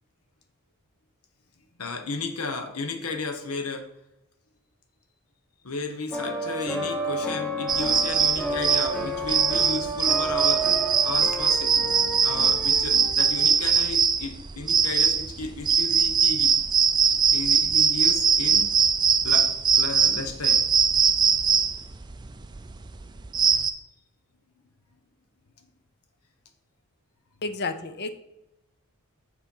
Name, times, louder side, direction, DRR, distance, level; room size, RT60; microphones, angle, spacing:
voice 1, 1.8-3.9 5.6-10.7 11.0-11.7 12.2-16.5 17.1-18.7 19.2-19.5 19.8-20.6, left 3 dB, 75° left, 6 dB, 1.1 m, -34 dB
sound 1, 6.1-13.7, right 2 dB, 5° left, 1.0 m, -31 dB
sound 2, 7.7-23.7, right 6 dB, 20° right, 0.4 m, -22 dB
voice 2, 27.4-28.1, left 3 dB, 50° left, 10 dB, 0.7 m, -30 dB
7.2 x 4.4 x 5.5 m, 0.90 s
head